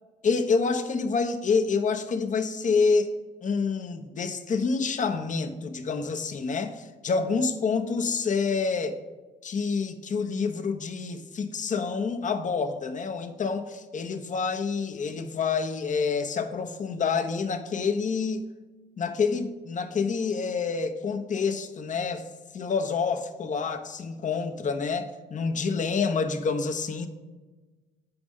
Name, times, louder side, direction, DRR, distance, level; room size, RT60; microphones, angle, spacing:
voice 1, 0.2-3.1 3.4-9.0 9.4-18.5 19.0-22.3 22.5-27.1, left 5 dB, 40° left, 7 dB, 0.8 m, -27 dB
7.9 x 5.1 x 3.6 m, 1.3 s
hypercardioid pair, 55°, 20 cm